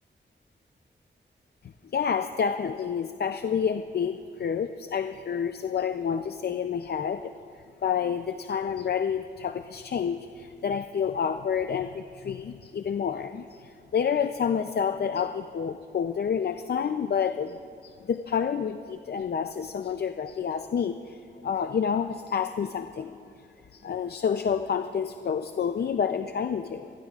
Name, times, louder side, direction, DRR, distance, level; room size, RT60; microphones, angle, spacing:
voice 1, 1.9-7.3 7.8-17.6 17.8-23.2 23.7-26.9, left 7 dB, 55° left, 8 dB, 0.5 m, -29 dB
28.0 x 20.0 x 2.4 m, 2.6 s
wide cardioid pair, 130°, 19 cm